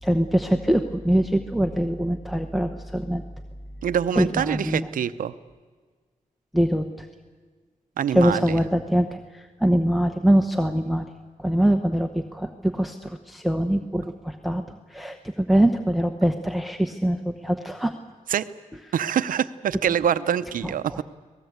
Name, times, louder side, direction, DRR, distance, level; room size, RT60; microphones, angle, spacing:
voice 1, 0.0-3.2 4.1-4.9 6.5-7.1 8.1-11.1 11.4-14.6 14.9-17.9 20.6-21.0, right 1 dB, ahead, 5 dB, 1.0 m, -23 dB
voice 2, 3.8-5.3 8.0-8.6 18.3-18.5 18.9-21.0, right 9 dB, 85° right, 13 dB, 0.8 m, -25 dB
25.5 x 18.5 x 8.1 m, 1.5 s
cardioid pair, 100°, 14 cm